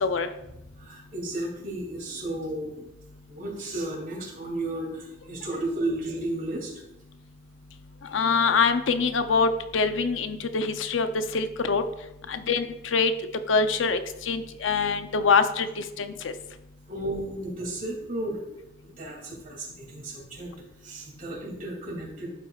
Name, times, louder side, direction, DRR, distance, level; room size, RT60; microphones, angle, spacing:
voice 1, 0.8-2.7 3.3-6.7 16.9-18.4 18.8-20.5 20.8-22.3, right 1 dB, 45° right, -2 dB, 2.7 m, -33 dB
voice 2, 8.1-11.8 12.3-13.1 13.5-16.3, left 4 dB, 80° left, 9 dB, 0.6 m, -24 dB
11.5 x 8.1 x 2.4 m, 0.89 s
head